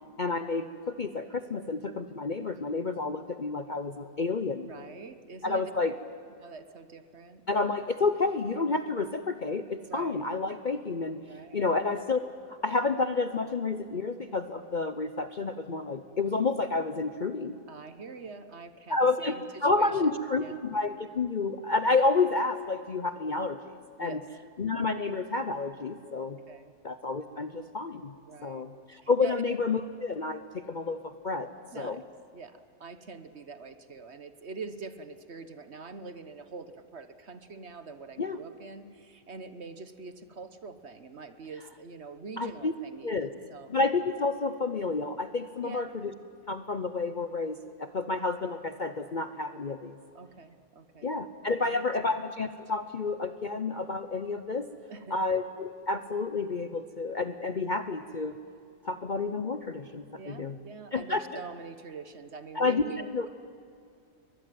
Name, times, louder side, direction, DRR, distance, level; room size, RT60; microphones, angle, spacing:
voice 1, 0.2-4.7 5.4-5.9 7.5-11.2 11.5-12.2 12.5-17.6 18.9-19.3 19.6-23.6 24.0-24.2 24.6-26.4 26.8-28.1 28.4-31.5 31.8-32.0 38.2-38.4 42.4-42.7 43.0-43.3 43.7-46.1 46.5-50.0 51.0-54.7 55.1-58.4 58.8-60.6 60.9-61.4 62.5-62.8 63.1-63.3, left 3 dB, 40° left, 10 dB, 0.8 m, -30 dB
voice 2, 4.4-5.7 6.4-7.8 9.8-10.2 11.3-11.7 17.7-20.6 24.0-24.2 26.5-26.7 28.3-28.6 29.0-29.4 31.7-32.0 32.3-43.7 45.6-45.9 50.1-51.2 51.6-51.8 54.9-55.2 60.2-63.3, right 4 dB, 50° right, 11 dB, 1.4 m, -44 dB
23.5 x 21.0 x 9.3 m, 2.4 s
omnidirectional pair, 1.6 m